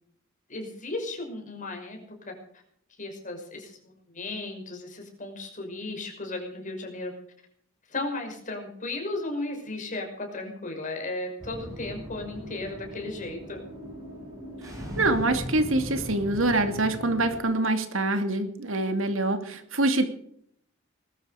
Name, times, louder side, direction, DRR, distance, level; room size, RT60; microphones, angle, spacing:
voice 1, 0.5-2.3 3.0-7.1 7.9-13.6, left 2 dB, 40° left, 2 dB, 5.9 m, -35 dB
sound 1, 11.4-17.4, equal, 15° right, 6.8 m, -38 dB
voice 2, 15.0-20.0, right 2 dB, 75° right, 7 dB, 2.6 m, -25 dB
21.0 x 12.5 x 5.0 m, 0.66 s
head